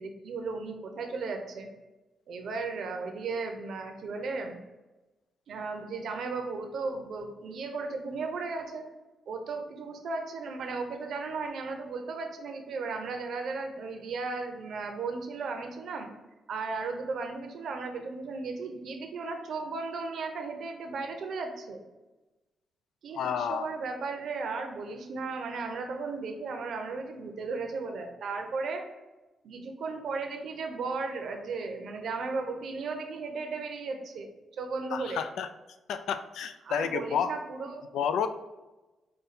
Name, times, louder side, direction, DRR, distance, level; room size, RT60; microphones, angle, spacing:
voice 1, 0.0-1.7 2.3-4.6 5.5-8.9 9.3-16.1 16.5-21.8 23.0-28.8 29.4-34.3 34.6-35.2 36.6-37.9, right 4 dB, 70° right, 4 dB, 0.7 m, -35 dB
voice 2, 23.2-23.7 34.9-35.5 35.9-37.3 37.9-38.3, left 8 dB, 90° left, 10 dB, 0.3 m, -30 dB
5.1 x 2.3 x 4.1 m, 1.1 s
cardioid pair, 110°, 0 cm